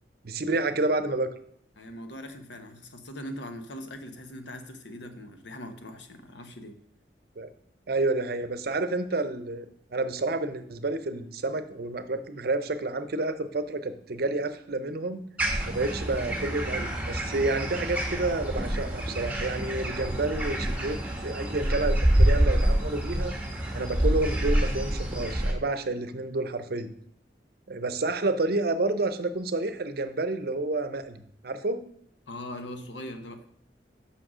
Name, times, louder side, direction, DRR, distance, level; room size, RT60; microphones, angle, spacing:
voice 1, 0.2-1.3 7.4-7.5 7.9-15.2 15.7-23.3 23.7-26.9 27.7-31.8, right 2 dB, 60° right, 11 dB, 0.7 m, -29 dB
voice 2, 1.8-6.8 32.3-33.4, left 1 dB, 85° left, 7 dB, 1.0 m, -41 dB
sound 1, 15.4-25.5, right 1 dB, 10° right, 1.4 m, -27 dB
6.3 x 5.7 x 6.1 m, 0.66 s
head